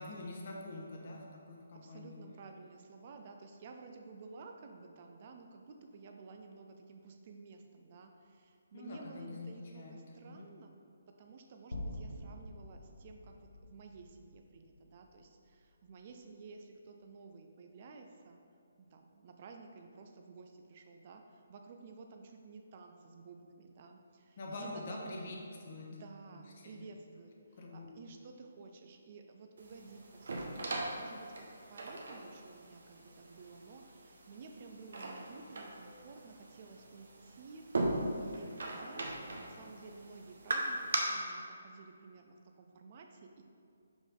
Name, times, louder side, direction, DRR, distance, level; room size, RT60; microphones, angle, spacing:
voice 1, 0.0-2.2 8.7-10.0 10.3-10.5 24.4-25.3 25.6-26.0 26.6-26.9 27.6-27.9, left 2 dB, 50° left, -1 dB, 1.0 m, -45 dB
voice 2, 1.7-8.1 8.3-10.7 11.2-13.3 13.7-15.3 15.8-18.4 18.8-21.2 21.5-25.3 25.9-27.3 27.6-31.3 31.7-37.6 38.2-40.8 41.1-43.1 43.4-43.5, right 4 dB, 40° right, 4 dB, 0.5 m, -53 dB
sound 1, 11.7-15.9, left 1 dB, 75° left, 0.9 m, -47 dB
sound 2, 29.6-41.0, right 2 dB, 65° right, 0.8 m, -40 dB
5.1 x 5.1 x 3.7 m, 2.4 s
figure-of-eight pair, 145°, 0 cm